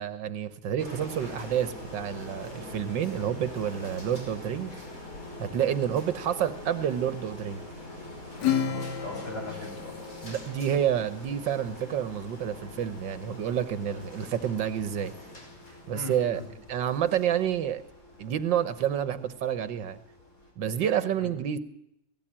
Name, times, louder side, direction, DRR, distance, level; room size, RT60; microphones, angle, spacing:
voice 1, 0.0-4.7 5.4-7.6 10.2-15.1 15.9-16.4 16.7-17.8 18.2-20.0 20.6-21.6, right 9 dB, 85° right, 13 dB, 1.8 m, -29 dB
sound 1, 0.8-20.5, left 1 dB, 50° left, 5.5 m, -44 dB
Acoustic guitar / Strum, 8.4-11.3, left 8 dB, 70° left, 1.6 m, -32 dB
voice 2, 8.4-9.9 15.9-16.5 21.2-21.3, left 1 dB, 20° left, -1 dB, 7.4 m, -40 dB
18.5 x 17.0 x 8.8 m, 0.78 s
omnidirectional pair, 2.0 m